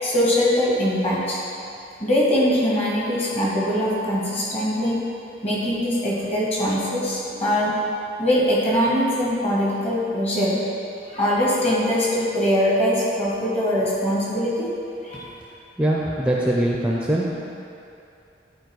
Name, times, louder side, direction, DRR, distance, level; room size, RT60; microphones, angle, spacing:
voice 1, 0.0-1.4 2.0-5.0 5.4-7.7 8.2-10.6 11.1-14.7 15.0-15.3, equal, 35° left, -6 dB, 2.0 m, -22 dB
voice 2, 15.8-17.3, right 1 dB, 5° right, -3 dB, 0.5 m, -22 dB
10.5 x 4.5 x 4.7 m, 2.7 s
head